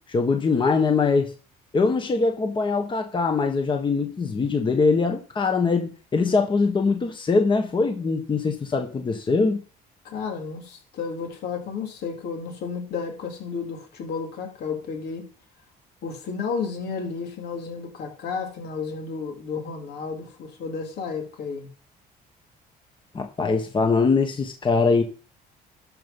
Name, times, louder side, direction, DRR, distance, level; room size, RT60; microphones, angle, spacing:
voice 1, 0.1-1.3 1.7-9.6 23.1-25.0, left 4 dB, 30° left, 1.5 m, -22 dB
voice 2, 10.0-15.3 16.0-21.7, left 5 dB, 75° left, 3.6 m, -32 dB
12.5 x 5.5 x 5.5 m
cardioid pair, 110°, 17 cm